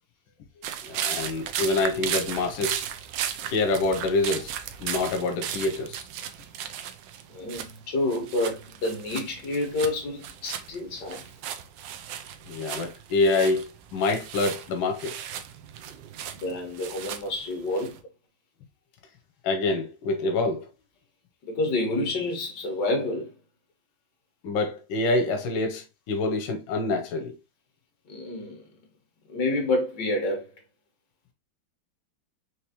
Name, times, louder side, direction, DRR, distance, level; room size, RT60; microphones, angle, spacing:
sound 1, 0.6-7.8 8.1-18.0, right 9 dB, 75° right, 1.2 m, -36 dB
voice 1, 0.8-2.8 3.5-4.5 4.8-6.0 12.5-15.2 19.4-20.7 24.4-27.4, left 2 dB, 90° left, 1.5 m, -26 dB
voice 2, 7.3-11.3 16.3-18.0 21.4-23.3 28.1-28.7 29.3-30.5, left 2 dB, 60° left, 1.9 m, -29 dB
4.7 x 3.1 x 2.9 m
omnidirectional pair, 2.2 m